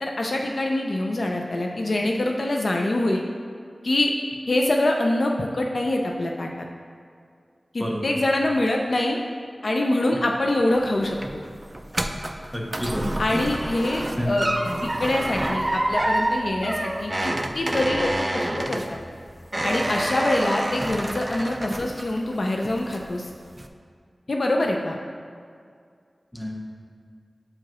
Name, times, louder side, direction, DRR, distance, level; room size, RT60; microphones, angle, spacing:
voice 1, 0.0-3.2 3.8-4.1 4.5-6.5 7.7-9.2 9.6-11.4 13.2-14.5 14.8-19.0 19.6-23.3 24.3-25.0, left 1 dB, 65° left, 1 dB, 0.4 m, -24 dB
voice 2, 7.8-8.1 12.5-13.1 14.2-14.3 26.3-26.5, equal, 10° left, -1 dB, 0.8 m, -29 dB
sound 1, 10.8-22.3 22.7-23.2 23.6-23.7, right 1 dB, 25° right, 0.3 m, -28 dB
7.4 x 4.6 x 3.0 m, 2.2 s
wide cardioid pair, 70°, 0 cm